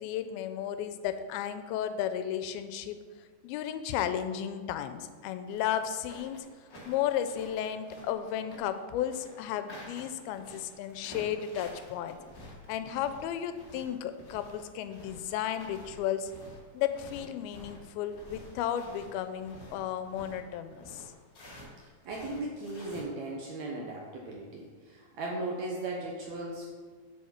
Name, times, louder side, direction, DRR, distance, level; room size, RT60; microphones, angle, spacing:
voice 1, 0.0-3.0 3.4-6.5 6.9-12.2 12.7-16.3 16.7-21.0, left 10 dB, 85° left, 10 dB, 2.4 m, -34 dB
sound 1, 5.5-21.7 22.0-23.0, left 1 dB, 45° left, 1.1 m, -50 dB
voice 2, 22.1-26.7, right 2 dB, 75° right, -1 dB, 1.6 m, -37 dB
6.7 x 6.4 x 5.7 m, 1.5 s
omnidirectional pair, 4.3 m